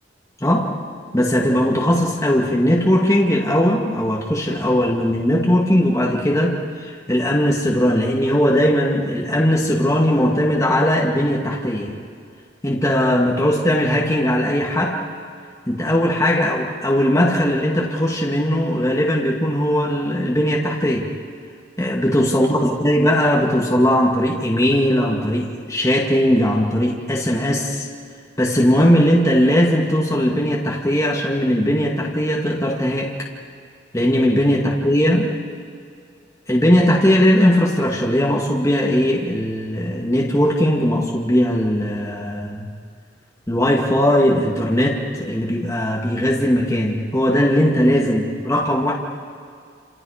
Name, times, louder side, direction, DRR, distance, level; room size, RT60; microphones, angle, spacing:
voice 1, 0.4-0.7 1.1-11.9 12.6-15.0 15.7-21.1 21.8-27.9 28.4-33.1 33.9-35.3 36.5-42.7 43.5-48.9, equal, 15° left, -2 dB, 2.3 m, -19 dB
28.5 x 28.0 x 5.1 m, 2.2 s
head